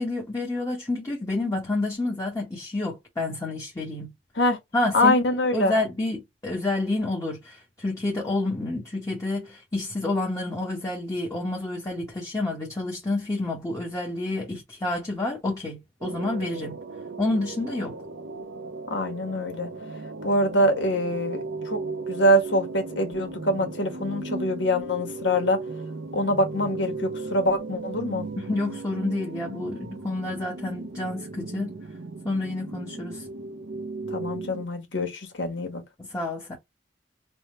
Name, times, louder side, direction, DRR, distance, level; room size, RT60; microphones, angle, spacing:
voice 1, 0.0-4.1 4.7-5.1 5.5-16.8 17.2-17.9 28.4-31.8 32.2-33.2 36.0-36.6, left 2 dB, 15° left, 1.0 m, -29 dB
voice 2, 4.9-5.7 18.9-19.7 20.2-21.8 22.1-25.6 26.1-28.3 34.1-35.8, equal, 75° left, 1.3 m, -24 dB
sound 1, 16.0-34.6, right 3 dB, 70° right, 0.7 m, -36 dB
3.4 x 2.2 x 4.2 m
head